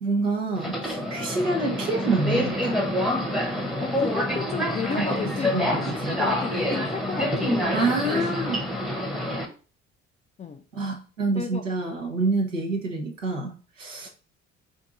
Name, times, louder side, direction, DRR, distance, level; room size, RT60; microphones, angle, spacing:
voice 1, 0.0-2.7 4.9-5.0 5.5-6.2 7.7-8.6 10.7-14.1, right 3 dB, 85° right, 0.8 m, -27 dB
Subway metro underground, 0.6-9.5, left 1 dB, ahead, 0.8 m, -27 dB
voice 2, 3.8-7.7 8.0-8.3 10.4-10.6 11.3-11.6, left 5 dB, 20° left, 0.4 m, -33 dB
4.4 x 2.5 x 3.7 m
figure-of-eight pair, 50°, 37 cm